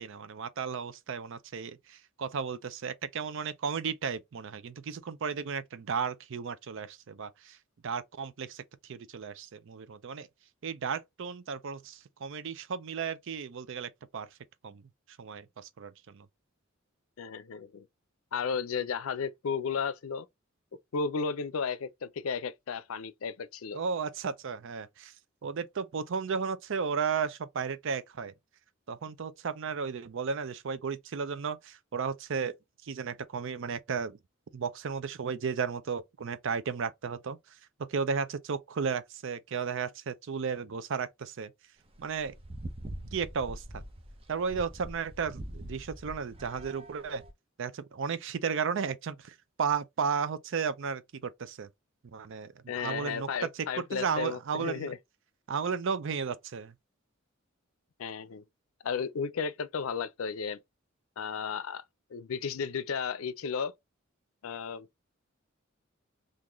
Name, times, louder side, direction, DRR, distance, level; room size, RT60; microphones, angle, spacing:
voice 1, 0.0-7.6 7.8-8.6 8.9-10.3 10.6-14.3 14.6-14.8 15.2-16.3 23.7-25.1 25.4-28.3 28.9-32.5 32.8-34.2 34.5-37.4 37.9-41.5 42.0-42.3 43.1-43.8 44.3-47.2 47.6-51.7 52.1-52.5 52.8-53.5 53.7-54.9 55.5-56.7, right 6 dB, 65° right, 0.5 m, -34 dB
voice 2, 17.2-17.9 18.3-20.3 20.9-23.8 52.7-55.0 58.0-58.4 58.8-60.6 61.2-61.8 62.1-63.7 64.4-64.9, left 6 dB, 80° left, 0.5 m, -34 dB
sound 1, 41.9-47.3, right 1 dB, 30° right, 0.7 m, -44 dB
3.7 x 2.5 x 3.0 m
head